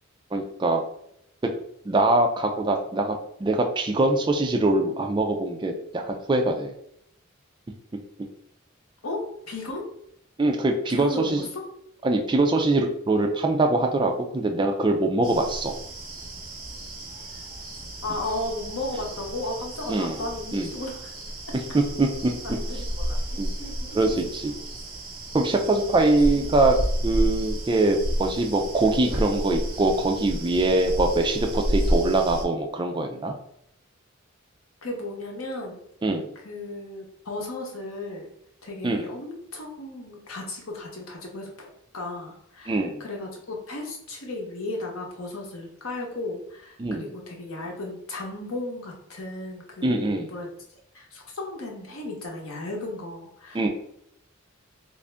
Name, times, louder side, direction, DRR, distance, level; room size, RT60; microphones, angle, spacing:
voice 1, 0.3-0.8 1.9-6.7 10.4-11.4 12.0-15.7 19.9-20.2 20.5-20.7 21.7-22.3 23.4-23.5 23.9-24.5 25.3-26.8 27.0-33.3 36.0-36.3 38.8-39.0 42.7-43.0 46.8-47.1 49.8-50.3 53.5-53.7, right 2 dB, 20° right, 3 dB, 0.3 m, -23 dB
voice 2, 9.0-9.9 10.9-11.6 18.0-21.1 22.4-24.1 25.9-26.5 34.8-35.8 36.4-38.3 38.6-50.5 50.9-53.7, left 2 dB, 85° left, 0 dB, 0.9 m, -35 dB
sound 1, 15.2-32.4, equal, 45° right, 1.0 m, -31 dB
3.4 x 2.5 x 3.3 m, 0.74 s
head